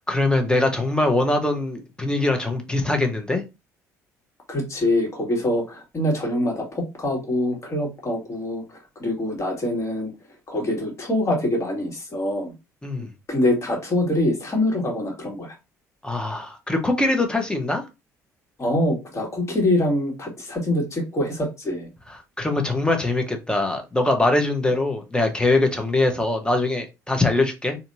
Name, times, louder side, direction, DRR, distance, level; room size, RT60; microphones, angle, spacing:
voice 1, 0.1-3.4 12.8-13.1 16.0-17.9 22.1-27.8, left 2 dB, 10° left, 1.1 m, -22 dB
voice 2, 4.5-8.6 9.0-10.1 10.5-12.5 13.3-15.5 18.6-21.9, left 1 dB, 35° left, 1.9 m, -24 dB
4.1 x 2.8 x 2.6 m
figure-of-eight pair, 55°, 9 cm